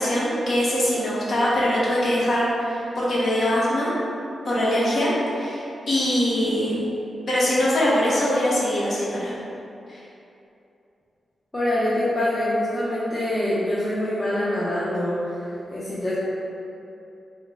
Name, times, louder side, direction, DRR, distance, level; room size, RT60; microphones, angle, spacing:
voice 1, 0.0-3.9 4.4-6.8 7.3-9.3 9.9-10.0, equal, 60° left, -7 dB, 1.0 m, -22 dB
voice 2, 11.5-16.2, left 1 dB, 20° left, -10 dB, 0.6 m, -25 dB
4.6 x 2.1 x 3.5 m, 2.8 s
wide cardioid pair, 115°, 0 cm